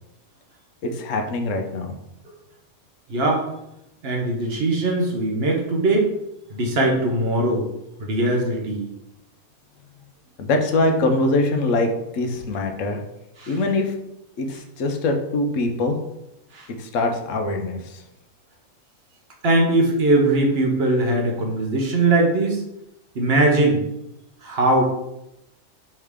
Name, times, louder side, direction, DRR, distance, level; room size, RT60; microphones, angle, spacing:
voice 1, 0.8-1.9 10.4-13.0 13.5-13.9 14.4-16.0 16.8-17.8, left 2 dB, 65° left, 4 dB, 0.9 m, -23 dB
voice 2, 3.1-3.5 4.0-6.1 6.5-7.6 8.0-8.8 13.4-13.6 16.5-16.7 19.4-22.6 23.1-23.8 24.4-24.8, right 2 dB, 50° right, 1 dB, 0.9 m, -20 dB
4.7 x 3.3 x 3.5 m, 0.87 s
omnidirectional pair, 1.5 m